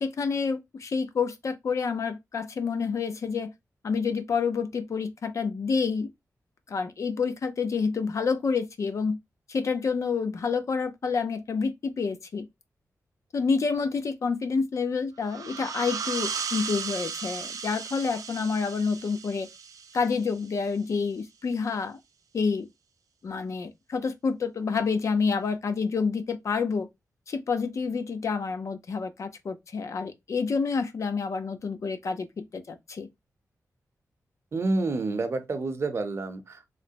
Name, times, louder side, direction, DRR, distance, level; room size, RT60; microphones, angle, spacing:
voice 1, 0.0-3.5 3.8-6.1 6.7-9.2 9.5-12.5 13.3-19.5 19.9-22.0 22.3-22.7 23.2-26.9 27.3-33.1, left 5 dB, 60° left, 0.5 m, -28 dB
sound 1, 15.2-20.6, right 6 dB, 75° right, 0.5 m, -36 dB
voice 2, 34.5-36.7, right 3 dB, 45° right, 0.7 m, -29 dB
3.2 x 2.9 x 2.8 m
wide cardioid pair, 135°, 6 cm